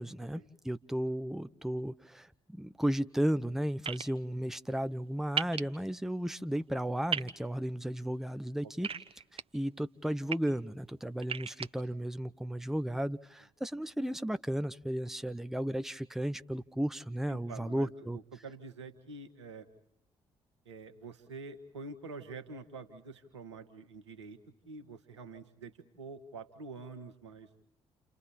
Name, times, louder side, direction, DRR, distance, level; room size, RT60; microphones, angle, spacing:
voice 1, 0.0-8.9 9.3-18.2, equal, 5° right, 12 dB, 0.8 m, -34 dB
sound 1, 3.8-4.0 5.4-5.6 7.1-7.3 8.8-9.4 10.1-10.4 11.2-11.7, right 6 dB, 40° right, 1.2 m, -34 dB
voice 2, 17.3-19.7 20.6-24.4 24.6-27.5, right 4 dB, 90° right, 7 dB, 1.5 m, -47 dB
29.5 x 29.0 x 4.3 m, 0.75 s
figure-of-eight pair, 45°, 15 cm